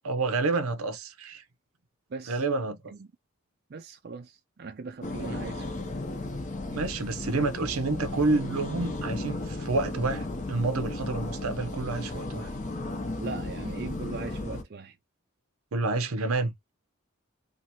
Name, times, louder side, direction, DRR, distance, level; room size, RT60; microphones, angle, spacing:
voice 1, 0.0-1.4 2.3-2.9 6.7-12.5 15.7-16.5, right 3 dB, 90° right, 0.7 m, -29 dB
voice 2, 2.1-2.4 2.8-3.1 3.7-5.7 13.2-15.0, right 4 dB, 45° right, 0.4 m, -40 dB
sound 1, 5.0-14.6, left 2 dB, 35° left, 0.6 m, -35 dB
2.8 x 2.5 x 2.8 m
head